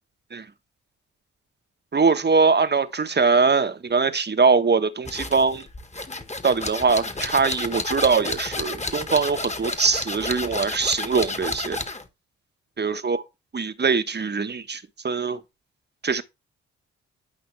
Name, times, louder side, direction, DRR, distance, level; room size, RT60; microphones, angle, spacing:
voice 1, 1.9-5.7 6.4-11.8 12.8-13.2 13.5-15.4 16.0-16.2, right 4 dB, 35° right, 1.2 m, -22 dB
sound 1, 5.1-12.1, left 2 dB, 20° left, 1.7 m, -31 dB
12.5 x 5.6 x 3.3 m
hypercardioid pair, 45°, 32 cm